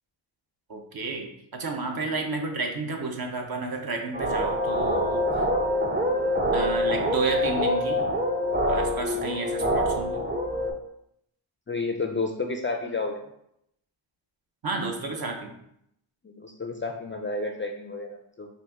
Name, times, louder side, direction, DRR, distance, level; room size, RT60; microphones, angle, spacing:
voice 1, 0.7-5.4 6.5-8.1 8.7-10.2 14.6-15.5, right 3 dB, 50° right, 2 dB, 0.8 m, -31 dB
sound 1, 4.1-10.7, equal, 20° right, 0.6 m, -25 dB
voice 2, 11.7-13.2 16.2-18.5, left 3 dB, 25° left, 3 dB, 0.4 m, -31 dB
4.2 x 2.5 x 3.6 m, 0.76 s
cardioid pair, 65°, 49 cm